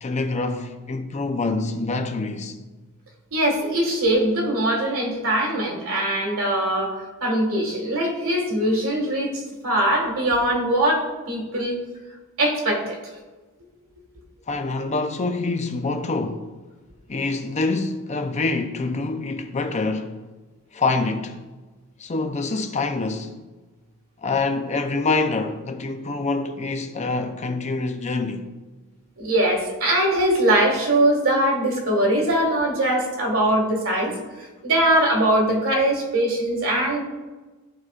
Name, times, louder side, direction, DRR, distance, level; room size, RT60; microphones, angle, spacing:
voice 1, 0.0-2.6 14.5-16.5 17.1-20.2 20.7-21.4 22.0-23.4 24.2-28.5, left 3 dB, 35° left, 0.5 m, -26 dB
voice 2, 3.3-7.0 7.2-11.8 12.4-13.0 29.2-34.1 34.6-37.0, right 1 dB, 70° right, 1.9 m, -21 dB
14.0 x 4.8 x 2.4 m
head